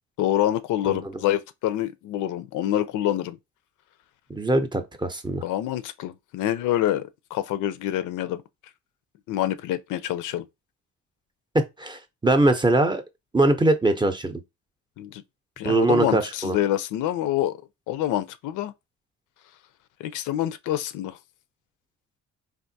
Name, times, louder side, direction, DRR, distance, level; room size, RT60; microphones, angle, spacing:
voice 1, 0.2-3.4 5.4-8.4 9.3-10.5 15.0-15.2 15.6-17.6 17.9-18.7 20.0-21.2, left 12 dB, 85° left, 0.5 m, -26 dB
voice 2, 4.3-5.4 11.5-13.0 13.3-14.4 15.6-16.6, right 2 dB, 15° right, 0.6 m, -22 dB
3.4 x 2.5 x 2.7 m
cardioid pair, 90°, 30 cm